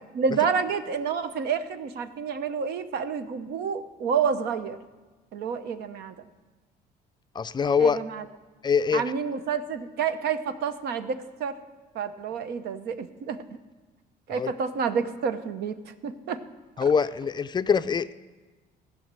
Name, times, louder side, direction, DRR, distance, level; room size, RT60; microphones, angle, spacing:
voice 1, 0.1-4.8 5.3-6.1 7.8-8.2 8.9-11.6 11.9-13.4 14.3-16.4, right 6 dB, 70° right, 10 dB, 0.8 m, -29 dB
voice 2, 7.3-8.0 8.6-9.0 14.3-14.5 16.8-18.1, left 6 dB, 25° left, 12 dB, 0.4 m, -23 dB
15.5 x 6.4 x 8.9 m, 1.3 s
cardioid pair, 110°, 17 cm